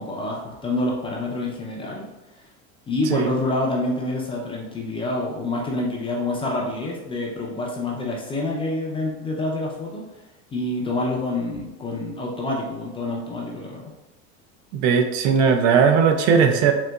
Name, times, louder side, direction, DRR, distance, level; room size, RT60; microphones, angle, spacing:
voice 1, 0.0-2.0 2.9-10.0 10.5-13.9, left 2 dB, 15° left, -2 dB, 0.4 m, -27 dB
voice 2, 14.7-16.7, right 6 dB, 65° right, 6 dB, 0.6 m, -18 dB
3.9 x 2.8 x 2.2 m, 1.0 s
supercardioid pair, 130°, 36 cm